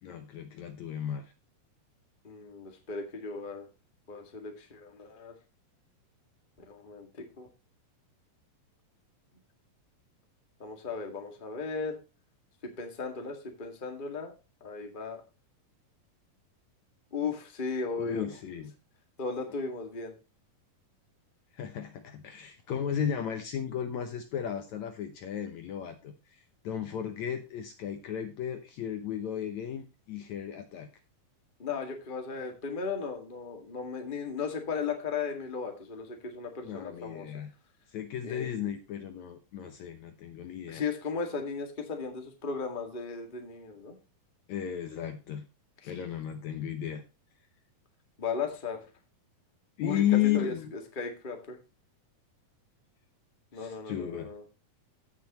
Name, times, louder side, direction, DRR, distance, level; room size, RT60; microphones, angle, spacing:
voice 1, 0.0-1.2 18.0-18.7 21.5-30.9 36.6-37.5 37.9-40.9 44.5-45.4 45.8-47.0 49.8-50.7 53.5-54.3, left 10 dB, 70° left, 6 dB, 2.0 m, -34 dB
voice 2, 2.2-3.7 4.1-5.3 6.7-7.1 7.4-7.5 10.6-12.0 12.6-14.3 14.6-15.2 17.1-18.3 19.2-20.1 31.6-37.3 38.2-38.5 40.7-43.9 45.8-45.9 48.2-48.9 49.8-51.6 53.5-54.4, left 5 dB, 20° left, 3 dB, 1.4 m, -36 dB
16.5 x 6.3 x 3.0 m, 0.29 s
omnidirectional pair, 4.0 m